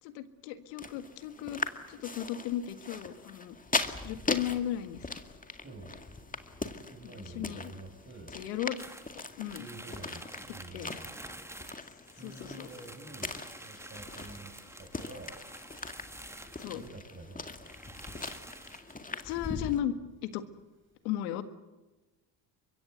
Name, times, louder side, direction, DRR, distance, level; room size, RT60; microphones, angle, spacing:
voice 1, 0.0-1.6 1.9-3.6 4.0-5.2 7.0-7.7 8.3-8.8 9.1-9.7 10.7-10.9 12.2-12.7 16.6-16.8 19.1-19.9 20.2-20.4 21.0-21.4, left 11 dB, 85° left, 10 dB, 1.8 m, -36 dB
sound 1, 0.8-19.8, left 3 dB, 15° left, 2.1 m, -40 dB
voice 2, 5.6-6.0 6.6-8.4 9.6-11.1 12.1-14.5 14.8-15.4 16.7-17.7, right 2 dB, 25° right, 4 dB, 7.5 m, -48 dB
sound 2, 8.8-17.0 17.3-17.4 17.6-19.5, right 1 dB, 5° right, 1.6 m, -48 dB
24.5 x 22.5 x 8.1 m, 1.1 s
supercardioid pair, 75°, 49 cm